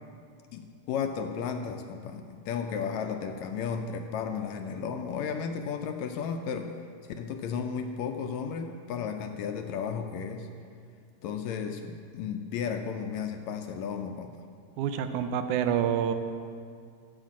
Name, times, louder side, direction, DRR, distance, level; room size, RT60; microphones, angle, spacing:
voice 1, 0.5-6.7 7.2-10.5 11.2-14.4, left 6 dB, 80° left, 6 dB, 1.7 m, -34 dB
voice 2, 14.8-16.1, right 9 dB, 85° right, 9 dB, 2.1 m, -27 dB
11.5 x 5.1 x 7.3 m, 2.2 s
omnidirectional pair, 3.5 m